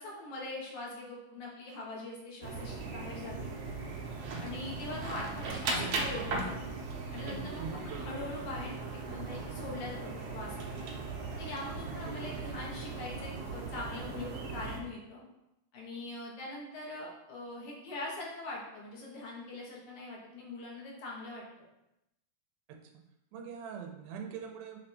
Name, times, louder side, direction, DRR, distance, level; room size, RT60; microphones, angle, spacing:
voice 1, 0.0-3.5 4.4-6.7 7.1-10.9 11.4-15.2 15.7-21.4, left 2 dB, 80° left, -3 dB, 2.7 m, -42 dB
sound 1, 2.4-14.8, right 3 dB, 65° right, 1.7 m, -38 dB
voice 2, 4.3-4.7 7.6-8.2 11.9-12.5 22.7-23.0 23.3-24.8, right 6 dB, 90° right, 4 dB, 2.1 m, -44 dB
6.8 x 3.3 x 4.2 m, 0.89 s
omnidirectional pair, 3.4 m